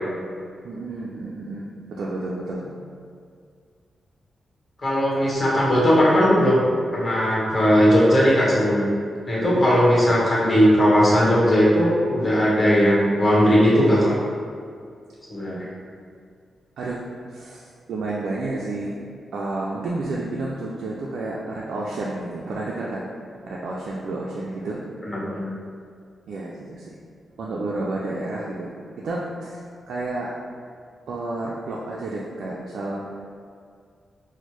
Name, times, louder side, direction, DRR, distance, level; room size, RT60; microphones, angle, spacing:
voice 1, 0.6-2.6 9.4-9.7 16.8-17.0 17.3-19.0 19.3-23.1 23.4-24.8 26.3-27.0 27.4-28.7 29.0-30.3 31.1-33.2, right 2 dB, 75° right, -5 dB, 0.3 m, -30 dB
voice 2, 4.8-6.6 6.9-8.9 9.3-14.2 15.3-15.7 25.0-25.5, equal, 40° left, -6 dB, 1.2 m, -18 dB
4.2 x 2.1 x 3.0 m, 2.1 s
supercardioid pair, 45°, 0 cm